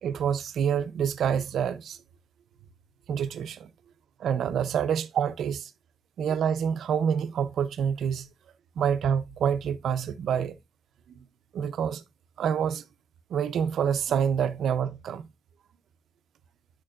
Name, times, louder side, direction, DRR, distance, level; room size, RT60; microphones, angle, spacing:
voice 1, 0.0-2.0 3.1-3.7 4.2-5.7 6.2-8.3 8.8-10.6 11.2-11.3 11.5-12.0 12.4-12.8 13.3-15.3, right 8 dB, 75° right, 0.6 m, -27 dB
8.9 x 5.9 x 2.4 m
wide cardioid pair, 180°, 0 cm